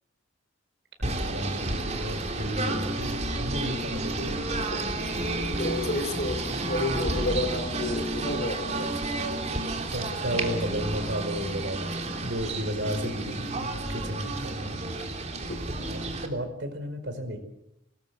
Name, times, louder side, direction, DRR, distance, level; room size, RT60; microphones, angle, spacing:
Singing / Bird, 1.0-16.3, right 2 dB, 35° right, 3.2 m, -31 dB
voice 1, 1.0-4.5 9.7-15.1 15.6-17.4, equal, 60° right, 8 dB, 4.9 m, -34 dB
voice 2, 5.5-8.9 10.1-10.6, left 1 dB, 50° left, 9 dB, 3.2 m, -31 dB
24.0 x 19.5 x 7.9 m, 0.82 s
head